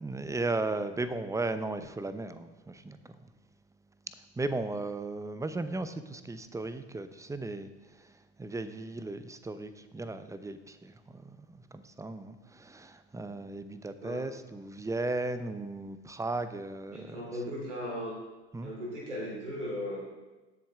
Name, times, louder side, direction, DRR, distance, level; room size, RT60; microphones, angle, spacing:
voice 1, 0.0-3.3 4.4-7.7 8.0-8.1 8.4-17.2 18.5-18.7, right 2 dB, 10° right, 12 dB, 0.7 m, -36 dB
voice 2, 16.9-18.1 18.6-20.0, equal, 85° right, -3 dB, 3.3 m, -37 dB
17.0 x 7.2 x 3.6 m, 1.1 s
figure-of-eight pair, 70°, 35 cm